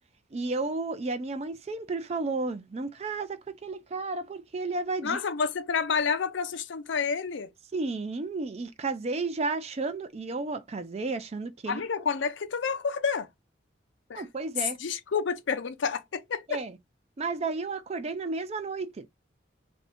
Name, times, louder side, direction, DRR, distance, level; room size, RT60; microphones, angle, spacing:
voice 1, 0.3-5.2 7.7-11.8 14.2-14.8 16.5-16.8 17.2-19.1, right 3 dB, 35° right, 0.4 m, -32 dB
voice 2, 5.0-7.5 11.7-13.3 14.1-14.2 14.8-16.6, left 5 dB, 75° left, 0.5 m, -29 dB
2.6 x 2.6 x 3.3 m
head